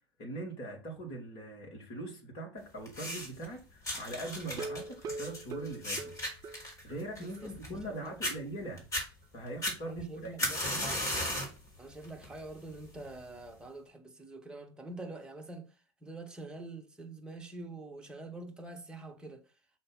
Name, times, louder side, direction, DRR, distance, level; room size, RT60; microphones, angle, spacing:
voice 1, 0.2-6.1 6.8-8.9 9.3-10.9, right 2 dB, 40° left, 3.2 m, -42 dB
sound 1, 2.9-3.5 3.8-7.9 8.2-8.3 8.8-9.1 9.6-11.6 12.0-12.4 13.2-13.3, left 1 dB, 20° left, 4.2 m, -35 dB
sound 2, 4.5-7.1 7.4-7.5 7.8-7.9 8.3-8.4, right 3 dB, 25° right, 0.6 m, -42 dB
voice 2, 7.2-8.2 9.9-11.1 11.8-19.5, right 2 dB, 5° right, 1.7 m, -45 dB
6.5 x 4.4 x 5.7 m
figure-of-eight pair, 90°, 15 cm